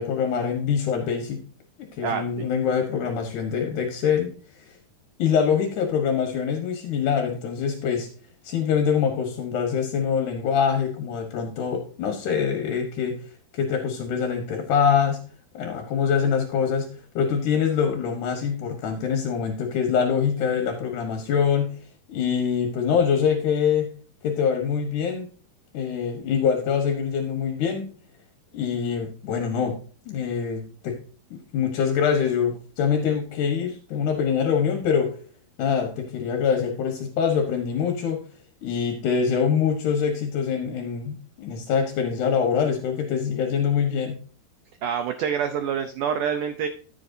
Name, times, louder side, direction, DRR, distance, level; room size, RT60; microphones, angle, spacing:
voice 1, 0.0-1.4 2.0-4.3 4.5-4.8 5.2-8.1 8.4-13.2 13.5-15.2 15.5-21.7 22.1-23.9 24.2-25.3 25.7-27.9 28.5-29.8 30.1-31.0 31.3-35.1 35.6-38.2 38.6-44.2, left 7 dB, 65° left, 3 dB, 2.3 m, -24 dB
voice 2, 44.8-46.7, right 7 dB, 80° right, 8 dB, 1.8 m, -26 dB
14.0 x 7.5 x 2.7 m, 0.43 s
omnidirectional pair, 4.6 m